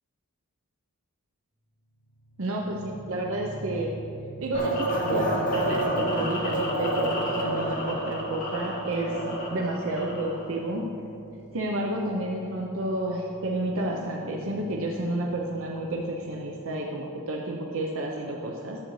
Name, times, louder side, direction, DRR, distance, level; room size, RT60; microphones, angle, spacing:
sound 1, 1.8-16.4, right 2 dB, 90° left, 2.0 m, -45 dB
voice 1, 2.4-3.9 4.4-10.9 11.5-18.8, right 1 dB, 65° right, -1 dB, 0.7 m, -31 dB
sound 2, 4.5-10.5, right 1 dB, 40° left, 1.4 m, -29 dB
12.0 x 7.7 x 3.2 m, 2.7 s
head